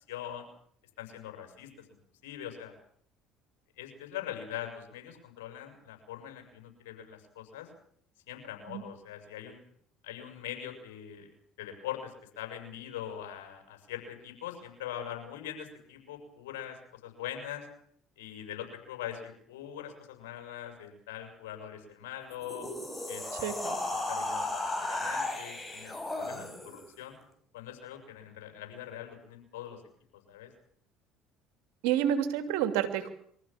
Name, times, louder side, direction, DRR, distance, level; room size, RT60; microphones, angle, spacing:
voice 1, 0.1-0.5 1.0-2.7 3.8-7.7 8.3-9.6 10.0-11.3 11.6-16.8 17.0-17.7 18.2-22.7 23.1-23.5 24.1-27.1 27.5-29.8 30.1-30.5, left 10 dB, 80° left, 5 dB, 6.7 m, -42 dB
sound 1, 22.3-26.9, left 2 dB, 15° left, 6.0 m, -35 dB
voice 2, 23.4-23.8 31.8-33.1, right 10 dB, 75° right, 7 dB, 3.0 m, -29 dB
24.0 x 15.0 x 8.8 m, 0.65 s
hypercardioid pair, 70°, 0 cm